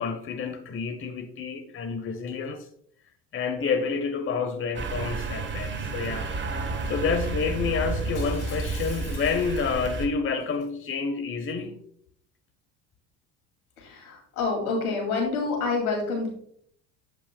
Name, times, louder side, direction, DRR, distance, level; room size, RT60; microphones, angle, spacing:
voice 1, 0.0-2.7 3.3-6.3 6.9-11.8, left 5 dB, 30° left, 0.9 m, -29 dB
sound 1, 4.7-10.1, right 3 dB, 25° right, 1.3 m, -31 dB
Shatter, 8.2-10.0 10.4-10.7, left 7 dB, 60° left, 1.9 m, -46 dB
voice 2, 13.8-16.3, left 4 dB, 80° left, 2.7 m, -27 dB
8.4 x 7.4 x 2.2 m
hypercardioid pair, 65°, 43 cm